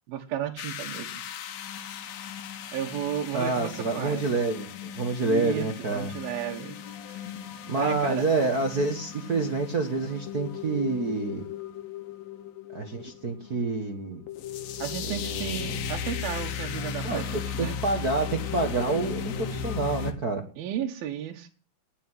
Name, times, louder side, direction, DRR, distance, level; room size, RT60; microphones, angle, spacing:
voice 1, 0.1-1.1 2.7-4.2 5.2-6.8 7.1-7.4 7.7-8.2 14.8-17.8 20.6-21.5, right 10 dB, 80° right, 3 dB, 3.2 m, -33 dB
sound 1, 0.6-20.1, left 8 dB, 75° left, 3.0 m, -37 dB
voice 2, 3.3-6.1 7.7-11.5 12.7-14.2 15.1-15.7 17.0-20.5, right 3 dB, 55° right, 5 dB, 1.0 m, -28 dB
19.0 x 7.0 x 9.7 m, 0.40 s
omnidirectional pair, 4.3 m